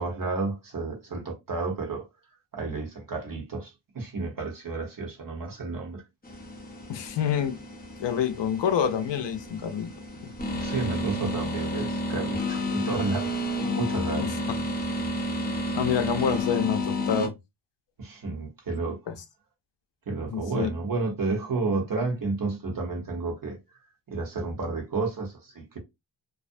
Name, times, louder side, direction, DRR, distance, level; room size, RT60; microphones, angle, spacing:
voice 1, 0.0-2.1 2.5-6.0 10.6-13.4 13.7-14.3 18.0-19.0 20.1-23.6 24.1-25.8, right 3 dB, 45° right, 1.0 m, -31 dB
sound 1, 6.2-17.3, left 1 dB, 20° left, 0.6 m, -31 dB
voice 2, 6.9-7.6 8.0-9.9 10.2-10.3 14.2-14.4 15.7-17.3 20.3-20.7, left 8 dB, 65° left, 0.5 m, -27 dB
2.4 x 2.0 x 2.5 m
wide cardioid pair, 125°, 47 cm